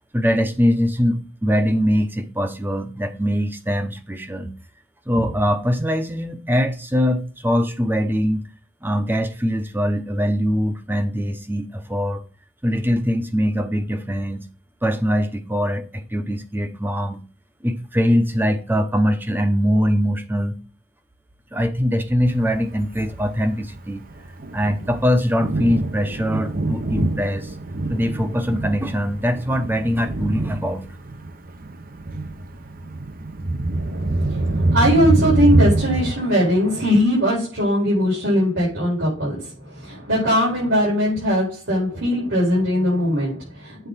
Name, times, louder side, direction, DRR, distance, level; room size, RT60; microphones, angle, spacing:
voice 1, 0.1-4.5 5.1-8.5 8.8-12.2 12.6-14.4 14.8-17.2 17.6-20.6 21.5-24.0 24.5-27.5 27.9-30.8, equal, 10° right, 0.9 m, -22 dB
Thunder, 22.5-36.1, right 2 dB, 45° right, 0.8 m, -25 dB
voice 2, 33.7-43.9, equal, 75° right, 4.4 m, -20 dB
8.1 x 3.9 x 5.6 m
head